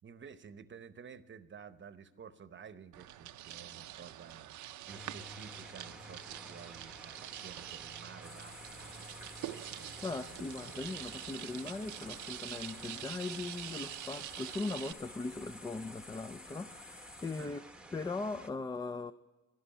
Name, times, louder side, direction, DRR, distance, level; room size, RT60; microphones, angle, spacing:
voice 1, 0.0-4.6 4.8-9.3 9.7-10.5 17.3-17.5, right 6 dB, 40° right, 0.9 m, -52 dB
sound 1, 2.9-14.9, right 14 dB, 75° right, 0.6 m, -46 dB
sound 2, 4.9-18.5, right 1 dB, 5° right, 0.9 m, -53 dB
sound 3, 8.2-17.5, left 3 dB, 60° left, 3.7 m, -53 dB
voice 2, 10.0-17.6 17.9-19.1, left 3 dB, 15° left, 0.4 m, -39 dB
11.5 x 11.0 x 9.3 m
cardioid pair, 90°, 30 cm